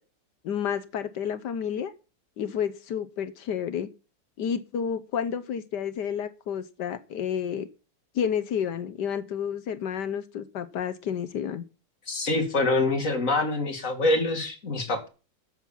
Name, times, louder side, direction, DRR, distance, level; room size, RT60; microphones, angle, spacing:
voice 1, 0.4-1.9 2.4-3.9 4.4-7.7 8.1-11.6, left 8 dB, 70° left, 1.5 m, -30 dB
voice 2, 12.1-15.1, left 2 dB, 45° left, 2.9 m, -25 dB
13.5 x 7.4 x 5.6 m
omnidirectional pair, 2.0 m